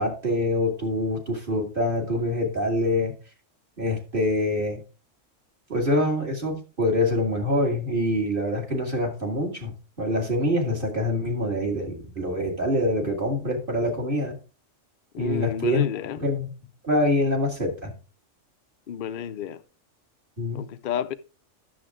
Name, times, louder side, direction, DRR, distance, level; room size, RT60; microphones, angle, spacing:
voice 1, 0.0-3.1 3.8-4.8 5.7-9.7 10.0-14.4 15.2-15.9 16.2-16.5 16.8-17.9 20.4-20.6, left 1 dB, 45° right, 2.3 m, -25 dB
voice 2, 15.1-16.2 18.9-19.6 20.5-21.1, left 9 dB, 55° left, 0.7 m, -31 dB
10.5 x 7.2 x 3.6 m
omnidirectional pair, 1.3 m